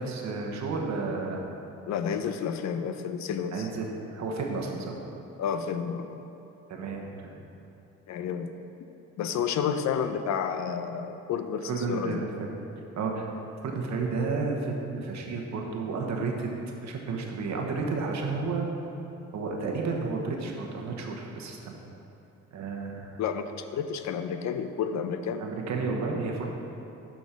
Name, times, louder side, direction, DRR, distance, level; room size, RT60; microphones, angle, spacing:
voice 1, 0.0-1.4 3.5-5.0 6.7-7.4 11.7-12.5 13.0-13.3 13.6-16.5 16.8-18.7 19.3-21.7 22.5-23.2 25.4-26.5, right 4 dB, 65° right, 1 dB, 1.1 m, -32 dB
voice 2, 1.9-3.7 5.4-6.2 8.1-8.5 9.2-12.2 23.2-25.4, left 7 dB, 65° left, 9 dB, 0.6 m, -30 dB
7.3 x 5.4 x 5.1 m, 2.9 s
cardioid pair, 90°, 30 cm